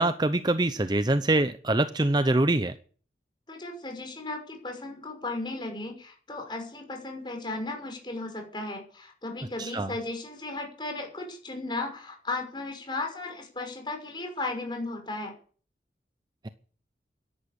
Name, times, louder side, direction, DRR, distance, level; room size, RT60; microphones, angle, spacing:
voice 1, 0.0-2.7 9.6-9.9 16.4-16.5, right 2 dB, 25° right, 12 dB, 0.6 m, -24 dB
voice 2, 3.5-15.3, left 2 dB, 25° left, 4 dB, 5.8 m, -35 dB
12.5 x 11.5 x 8.6 m, 0.43 s
head